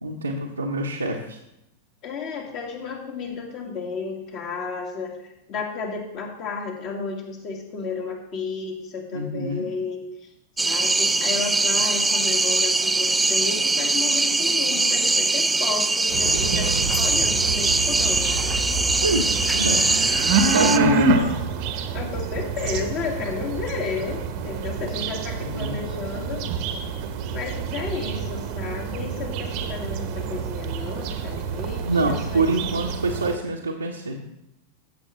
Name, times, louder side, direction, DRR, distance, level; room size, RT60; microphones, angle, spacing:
voice 1, 0.0-1.4 9.1-9.7 19.0-19.8 20.2-21.3 25.4-25.8 31.8-34.2, right 2 dB, 80° right, -3 dB, 1.1 m, -25 dB
voice 2, 2.0-10.3 10.6-18.3 21.9-26.5 27.3-32.7, left 5 dB, 40° left, 1 dB, 2.1 m, -32 dB
sound 1, 10.6-20.8, right 3 dB, 10° right, 0.4 m, -22 dB
sound 2, 15.7-23.0, left 4 dB, 65° left, 1.2 m, -42 dB
sound 3, 16.1-33.4, right 5 dB, 45° right, 1.0 m, -27 dB
14.5 x 6.9 x 3.2 m, 0.85 s
figure-of-eight pair, 90°, 0 cm